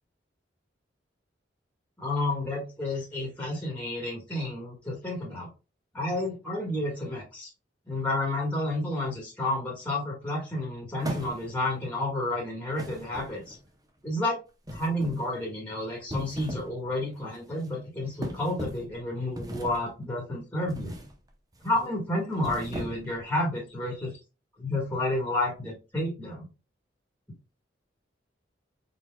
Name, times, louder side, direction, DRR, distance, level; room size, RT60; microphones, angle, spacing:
voice 1, 2.0-5.5 5.9-7.5 7.9-13.6 14.0-14.4 14.7-20.9 21.6-24.1 24.6-26.5, left 1 dB, 10° left, -2 dB, 1.4 m, -30 dB
sound 1, 11.0-11.7 12.8-13.7 14.7-15.3 16.0-16.8 17.1-17.4 18.2-18.9 19.4-19.9 20.7-21.1 21.5-21.8 22.3-23.2, equal, 20° right, 0.7 m, -38 dB
4.4 x 4.1 x 2.2 m, 0.29 s
head